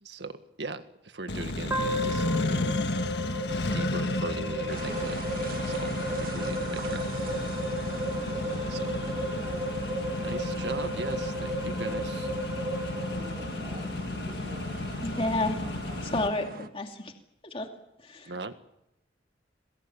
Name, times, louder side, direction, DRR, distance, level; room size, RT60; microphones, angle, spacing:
voice 1, 0.0-2.8 3.7-7.1 7.3-7.6 8.7-8.9 10.2-12.3 18.3-18.5, right 3 dB, 85° right, 9 dB, 1.8 m, -39 dB
Accelerating revving vroom, 1.3-16.3, left 2 dB, 70° left, 1.6 m, -33 dB
sound 1, 1.7-13.9, equal, 15° right, 3.5 m, -34 dB
sound 2, 4.7-16.7, right 3 dB, 55° right, 1.5 m, -42 dB
voice 2, 8.0-9.8 12.9-16.2, right 1 dB, 35° right, 1 dB, 4.9 m, -49 dB
voice 3, 15.0-15.5 16.1-17.1 17.4-17.7 18.0-18.3, left 2 dB, 30° left, 3 dB, 2.5 m, -30 dB
27.5 x 21.5 x 7.3 m, 0.84 s
head